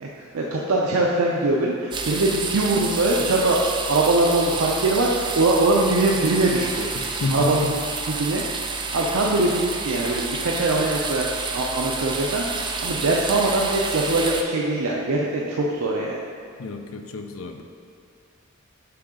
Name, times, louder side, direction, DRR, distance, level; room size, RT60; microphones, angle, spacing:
voice 1, 0.0-6.9 7.3-7.8 8.1-8.4 8.9-11.3 11.5-16.2, right 2 dB, 85° right, -2 dB, 0.5 m, -22 dB
sound 1, 1.9-14.4, right 4 dB, 20° right, 0.3 m, -29 dB
voice 2, 6.9-7.7 16.6-17.6, left 3 dB, 70° left, 5 dB, 0.5 m, -29 dB
6.0 x 3.8 x 4.8 m, 2.4 s
head